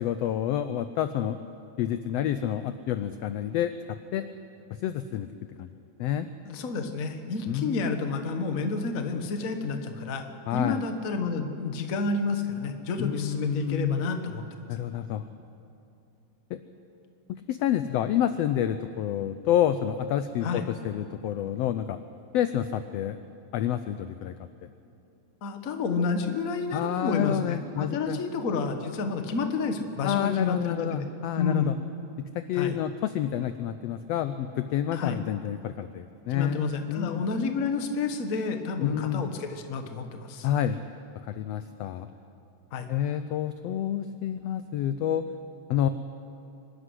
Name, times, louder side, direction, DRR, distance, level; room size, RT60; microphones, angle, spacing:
voice 1, 0.0-1.4 1.8-3.7 4.1-4.2 4.8-5.3 5.6-5.7 6.0-6.3 7.5-7.8 10.5-10.8 13.0-14.0 14.7-15.2 16.5-16.6 17.5-22.0 22.3-23.2 23.5-24.3 24.6-24.7 26.7-28.2 30.0-31.8 32.2-37.2 38.8-39.2 40.4-40.8 41.3-42.1 42.9-45.2 45.7-45.9, left 10 dB, 80° left, 11 dB, 1.4 m, -28 dB
voice 2, 6.4-10.3 10.5-14.4 20.4-20.7 25.4-31.0 31.4-31.8 32.5-32.8 34.9-35.2 36.3-40.5 42.7-42.9, left 4 dB, 45° left, 6 dB, 1.1 m, -30 dB
24.5 x 12.5 x 9.8 m, 2.6 s
omnidirectional pair, 3.5 m